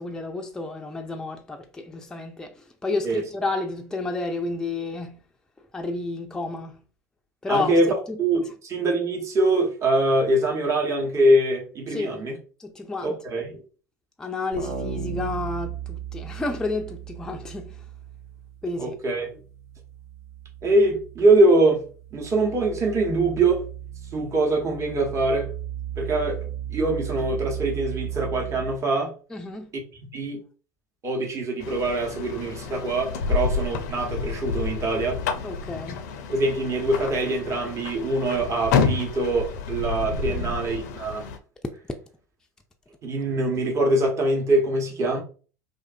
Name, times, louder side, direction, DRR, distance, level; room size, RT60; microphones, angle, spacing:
voice 1, 0.0-5.2 5.7-6.8 7.4-7.8 8.1-8.2 11.9-12.2 12.6-13.2 14.2-17.8 18.6-19.0 29.3-29.7 33.3-33.4 35.4-36.1 40.3-40.6, left 3 dB, 5° left, 0.3 m, -31 dB
voice 2, 7.5-7.9 8.2-12.4 13.0-13.6 18.8-19.4 20.6-21.9 22.1-23.6 24.1-25.5 26.0-29.1 29.7-29.8 30.1-30.4 31.0-35.2 36.3-41.2 43.0-45.2, right 2 dB, 30° right, 0.9 m, -23 dB
sound 1, 14.5-18.9 19.2-28.8, right 10 dB, 80° right, 0.6 m, -36 dB
sound 2, 31.6-41.4, left 5 dB, 70° left, 0.4 m, -29 dB
2.5 x 2.5 x 2.4 m
hypercardioid pair, 80°, 9 cm